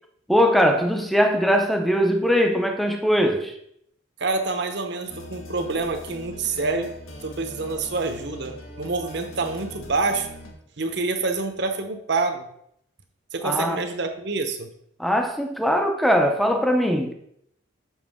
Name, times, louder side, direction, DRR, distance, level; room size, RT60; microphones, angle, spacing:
voice 1, 0.3-3.5 13.4-13.8 15.0-17.1, equal, ahead, 0.5 m, -21 dB
voice 2, 4.2-6.9 7.2-10.3 10.8-12.5 13.3-14.7, right 3 dB, 55° right, 0.8 m, -27 dB
sound 1, 5.1-10.5, left 1 dB, 85° left, 1.3 m, -41 dB
7.3 x 5.9 x 3.5 m
head